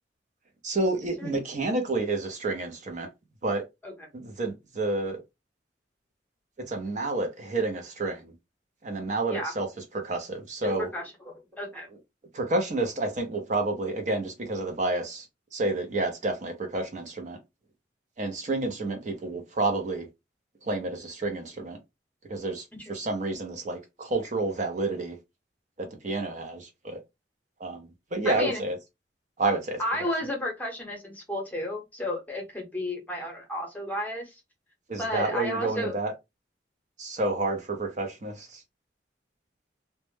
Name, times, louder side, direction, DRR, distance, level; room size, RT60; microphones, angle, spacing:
voice 1, 0.6-3.1 3.4-3.6 4.1-5.2 6.7-8.3 8.8-9.7 9.9-10.9 12.3-15.3 15.5-17.4 18.2-20.1 20.6-21.8 22.3-25.2 25.8-27.0 27.6-28.8 29.4-29.8 34.9-36.1 37.0-38.6, right 2 dB, 40° right, 0.5 m, -29 dB
voice 2, 10.6-11.9 22.7-22.8 28.2-28.6 29.8-34.4 34.9-35.9, left 1 dB, 10° left, 0.8 m, -33 dB
2.1 x 2.0 x 3.1 m
head